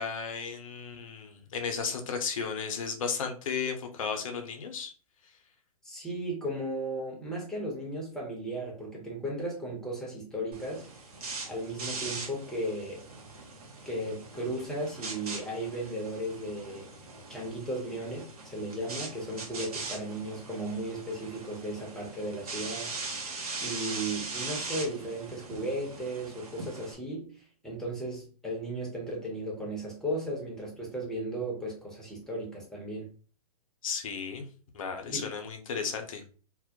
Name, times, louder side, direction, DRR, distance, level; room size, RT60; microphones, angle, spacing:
voice 1, 0.0-4.9 33.8-34.4 34.7-36.2, left 6 dB, 60° left, 5 dB, 0.6 m, -34 dB
voice 2, 5.8-10.9 11.4-13.0 13.9-16.9 17.3-22.9 23.6-33.1 35.1-35.3, right 1 dB, 5° left, -3 dB, 0.7 m, -35 dB
sound 1, 10.5-26.9, right 3 dB, 75° right, 0.8 m, -41 dB
2.2 x 2.0 x 2.7 m, 0.39 s
hypercardioid pair, 120°, 19 cm